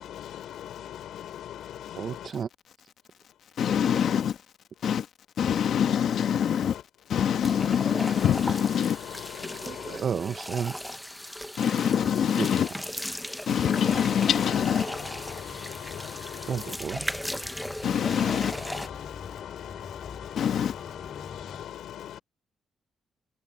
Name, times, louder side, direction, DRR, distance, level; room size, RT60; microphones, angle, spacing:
voice 1, 0.0-2.3 3.3-3.4 3.8-4.3 4.8-4.9 5.6-6.8 7.1-10.0 11.9-12.0 12.5-12.7 14.2-16.8 17.6-22.2, left 11 dB, 80° left, 5.5 m, -41 dB
voice 2, 2.0-2.5 9.6-10.8 12.4-12.5 16.5-17.1, right 7 dB, 50° right, 0.8 m, -31 dB
voice 3, 3.6-4.3 4.8-5.1 5.4-6.7 7.1-9.0 11.6-12.7 13.5-14.8 17.8-18.5 20.4-20.7, left 8 dB, 65° left, 1.3 m, -24 dB
sound 1, 7.4-18.9, equal, 5° left, 0.7 m, -37 dB
sound 2, 13.8-21.7, left 5 dB, 35° left, 2.9 m, -44 dB
cardioid pair, 125°, 0 cm